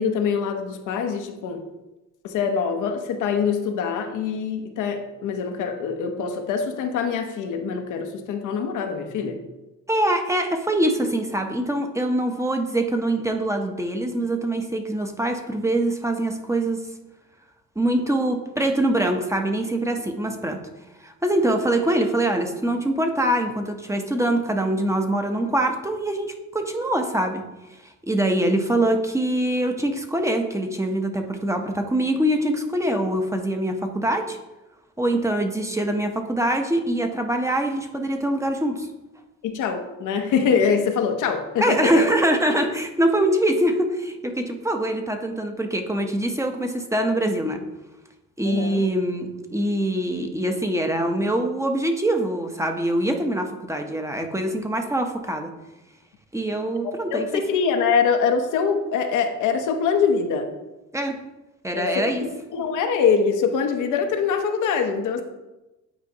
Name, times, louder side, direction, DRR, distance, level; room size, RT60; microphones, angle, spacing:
voice 1, 0.0-1.6 2.2-9.4 39.4-42.0 48.4-48.8 57.1-60.5 61.7-65.2, left 6 dB, 85° left, 5 dB, 0.8 m, -24 dB
voice 2, 9.9-16.9 17.8-20.6 21.0-27.4 27.8-34.4 35.0-38.9 41.6-47.6 48.4-55.5 56.3-57.3 60.9-61.2 61.6-62.2, right 1 dB, 10° right, 4 dB, 0.7 m, -24 dB
8.9 x 4.4 x 2.8 m, 1.0 s
cardioid pair, 90°, 30 cm